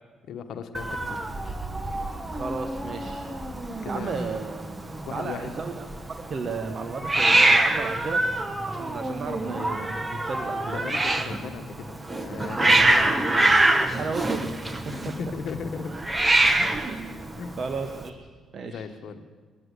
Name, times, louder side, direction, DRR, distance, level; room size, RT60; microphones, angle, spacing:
voice 1, 0.2-1.5 3.8-4.3 5.1-5.5 10.7-12.0 12.2-13.2 14.9-16.0 16.6-16.8 17.4-17.6 18.6-19.2, left 6 dB, 75° left, 7 dB, 1.1 m, -37 dB
Hiss, 0.7-18.1, right 2 dB, 20° right, 1.2 m, -25 dB
voice 2, 2.3-3.3 3.9-4.6 5.1-8.3 8.7-10.9 12.8-12.9 14.0-14.9 16.6-16.9 17.6-18.2 18.5-18.8, right 4 dB, 50° right, 6 dB, 1.0 m, -34 dB
21.0 x 7.8 x 8.2 m, 1.5 s
cardioid pair, 90°, 0 cm